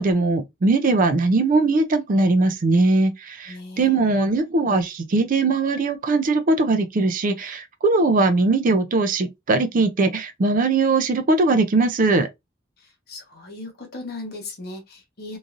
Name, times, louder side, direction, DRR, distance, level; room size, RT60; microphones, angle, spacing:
voice 1, 0.0-12.3, right 3 dB, 40° right, 0.4 m, -20 dB
voice 2, 3.5-4.0 13.1-15.4, left 2 dB, 50° left, 1.0 m, -37 dB
3.1 x 2.6 x 2.4 m
head